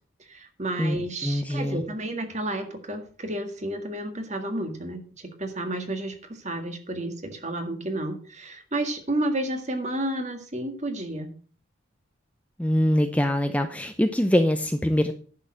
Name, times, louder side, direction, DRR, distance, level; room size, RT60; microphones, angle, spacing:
voice 1, 0.3-6.1 6.4-11.3, right 1 dB, 35° right, 6 dB, 1.8 m, -31 dB
voice 2, 1.2-1.8 12.6-15.1, equal, 5° left, 7 dB, 0.6 m, -23 dB
10.5 x 6.6 x 6.3 m, 0.43 s
head